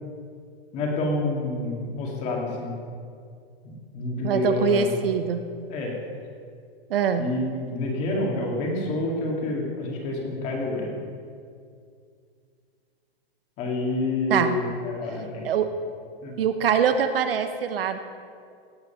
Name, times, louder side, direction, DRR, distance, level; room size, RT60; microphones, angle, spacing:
voice 1, 0.7-2.8 3.6-4.9 5.7-5.9 7.2-11.0 13.6-15.5 16.2-16.4, left 2 dB, 25° left, -1 dB, 2.0 m, -28 dB
voice 2, 4.2-5.4 6.9-7.3 14.3-14.6 15.4-15.7 16.4-18.0, right 7 dB, 65° right, 9 dB, 1.0 m, -23 dB
17.5 x 6.8 x 5.7 m, 2.3 s
hypercardioid pair, 165°, 30 cm